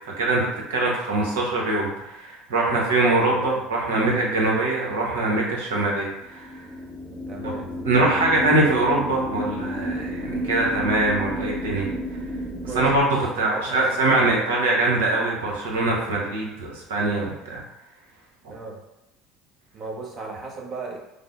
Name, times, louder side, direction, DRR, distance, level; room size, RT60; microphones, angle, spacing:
voice 1, 0.2-6.5 7.8-11.9 12.7-13.1 13.3-17.6, right 2 dB, 80° right, -2 dB, 0.9 m, -23 dB
voice 2, 3.3-3.6 7.3-7.7 12.5-12.9 13.4-14.2 18.5-18.8 19.7-21.0, right 3 dB, 45° right, -1 dB, 0.9 m, -36 dB
sound 1, 6.2-13.0, equal, 5° right, 0.7 m, -31 dB
5.1 x 2.0 x 2.5 m, 0.92 s
hypercardioid pair, 70°, 0 cm